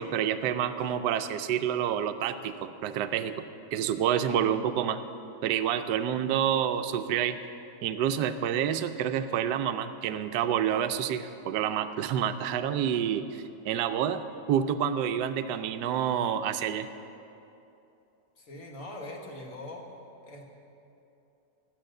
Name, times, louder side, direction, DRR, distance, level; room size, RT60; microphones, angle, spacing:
voice 1, 0.0-3.4 3.7-5.0 5.4-7.4 7.8-14.2 14.5-16.9, right 9 dB, 75° right, 9 dB, 1.2 m, -28 dB
voice 2, 18.4-19.9 20.2-20.5, left 1 dB, 50° left, 1 dB, 2.0 m, -42 dB
14.0 x 10.0 x 6.5 m, 2.8 s
omnidirectional pair, 1.9 m